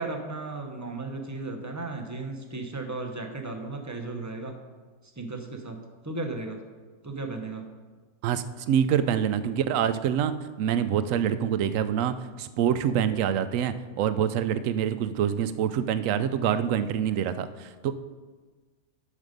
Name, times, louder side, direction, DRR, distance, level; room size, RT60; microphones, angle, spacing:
voice 1, 0.0-4.5 5.2-5.8 6.0-6.6 7.0-7.6, right 3 dB, 15° right, 3 dB, 0.6 m, -35 dB
voice 2, 8.2-17.9, right 9 dB, 70° right, 12 dB, 0.9 m, -26 dB
9.9 x 6.5 x 5.2 m, 1.4 s
omnidirectional pair, 1.6 m